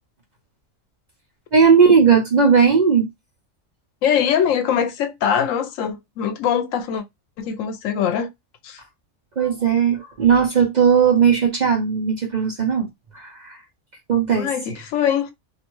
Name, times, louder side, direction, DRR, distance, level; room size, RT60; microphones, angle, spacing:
voice 1, 1.5-3.1 9.4-12.9 13.1-13.6 14.1-14.5, right 6 dB, 50° right, 0.6 m, -17 dB
voice 2, 4.0-7.0 7.4-8.3 8.6-8.8 14.3-15.3, left 8 dB, 85° left, 0.9 m, -22 dB
2.6 x 2.2 x 2.9 m
omnidirectional pair, 1.3 m